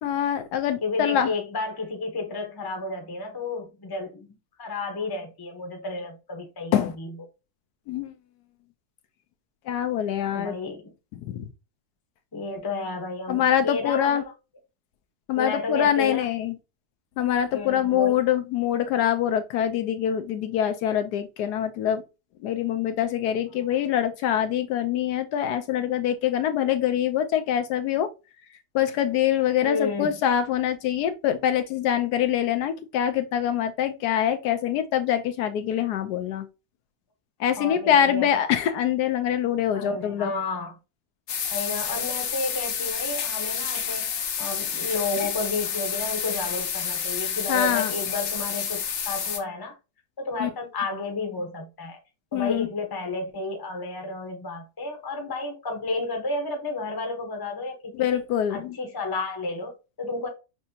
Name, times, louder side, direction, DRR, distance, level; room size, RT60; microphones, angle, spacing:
voice 1, 0.0-1.3 6.7-6.9 7.9-8.1 9.7-10.5 11.2-11.5 13.3-14.2 15.3-16.6 17.2-22.0 22.4-28.1 28.7-36.5 37.4-40.3 45.2-45.3 47.5-47.9 50.4-50.5 52.3-52.7 57.9-58.8, left 10 dB, 75° left, 1.1 m, -24 dB
voice 2, 0.8-4.3 4.6-7.1 10.3-10.8 12.3-14.3 15.3-16.3 17.5-18.2 29.6-30.1 37.6-38.4 39.7-40.7 41.5-44.1 44.4-49.7 50.2-52.0 52.3-58.2 58.5-60.3, left 3 dB, 20° left, 0.7 m, -31 dB
sound 1, 41.3-49.4, left 7 dB, 60° left, 0.8 m, -29 dB
6.1 x 2.7 x 2.7 m
omnidirectional pair, 1.8 m